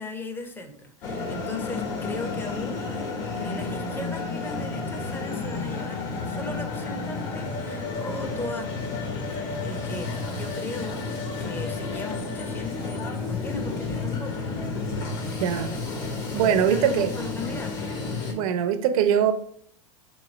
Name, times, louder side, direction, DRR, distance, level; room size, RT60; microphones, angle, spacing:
voice 1, 0.0-2.9 3.3-8.7 9.6-14.4 15.2-15.8 16.3-17.9, left 2 dB, 10° left, 0.6 m, -37 dB
sound 1, 1.0-18.3, left 3 dB, 55° left, 1.5 m, -31 dB
voice 2, 15.4-15.7 16.3-17.1 18.3-19.3, right 9 dB, 65° right, 0.6 m, -22 dB
3.6 x 3.1 x 3.9 m
hypercardioid pair, 110°, 20 cm